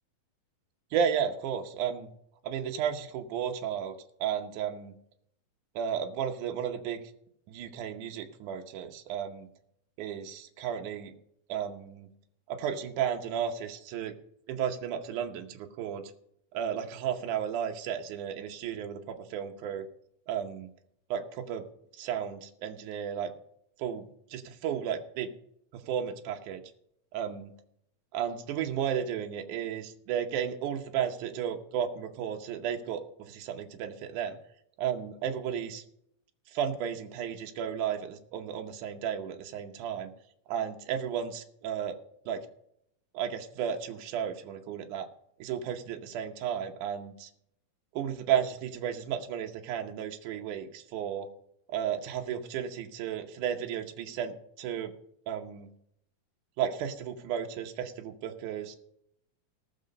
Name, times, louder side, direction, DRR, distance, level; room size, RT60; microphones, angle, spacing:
voice 1, 0.9-2.1 2.4-5.0 5.8-7.0 7.5-9.5 10.0-11.1 11.5-12.1 12.5-14.1 14.5-16.0 16.5-19.8 20.3-20.7 21.1-21.7 21.9-23.3 23.8-25.3 25.7-26.6 27.1-27.5 28.1-34.4 34.8-35.8 36.5-40.1 40.5-42.0 42.3-42.4 43.1-45.1 45.4-47.3 47.9-51.3 51.7-54.9 55.3-55.7 56.6-58.8, right 8 dB, 75° right, 4 dB, 2.4 m, -33 dB
17.5 x 6.6 x 5.3 m, 0.72 s
omnidirectional pair, 3.7 m